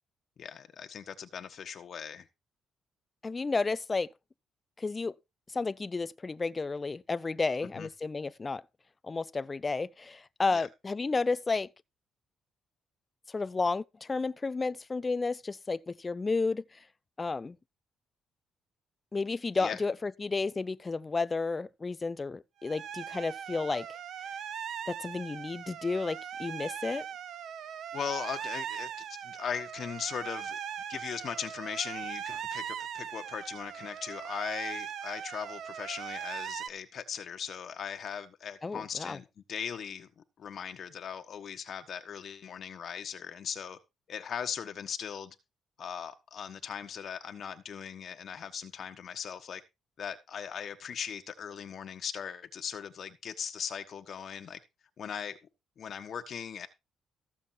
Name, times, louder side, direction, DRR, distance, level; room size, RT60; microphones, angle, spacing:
voice 1, 0.4-2.3 7.7-7.9 10.5-10.7 19.6-19.8 27.9-28.9 29.2-30.6 30.9-40.1 40.4-43.8 44.1-45.3 45.8-49.6 50.0-54.6 55.0-55.4 55.8-56.7, left 7 dB, 55° left, 1.2 m, -39 dB
voice 2, 3.2-4.1 4.8-5.1 5.5-8.6 9.0-11.7 13.3-16.6 17.2-17.6 19.1-23.9 24.9-27.1 38.6-39.2, left 3 dB, 25° left, 0.5 m, -32 dB
sound 1, 22.6-36.7, right 9 dB, 70° right, 0.9 m, -40 dB
14.5 x 6.9 x 4.4 m
cardioid pair, 115°, 0 cm